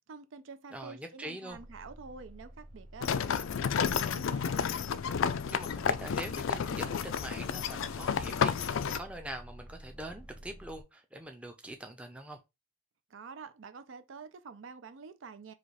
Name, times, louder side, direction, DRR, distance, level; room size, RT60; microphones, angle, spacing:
voice 1, 0.0-4.6 13.1-15.5, right 4 dB, 65° right, 0.5 m, -48 dB
voice 2, 0.7-1.6 5.5-12.4, right 1 dB, 5° right, 0.6 m, -44 dB
sound 1, 1.5-10.8, right 1 dB, 30° right, 1.5 m, -51 dB
sound 2, 3.0-9.0, left 7 dB, 70° left, 0.4 m, -31 dB
4.9 x 2.4 x 4.1 m
head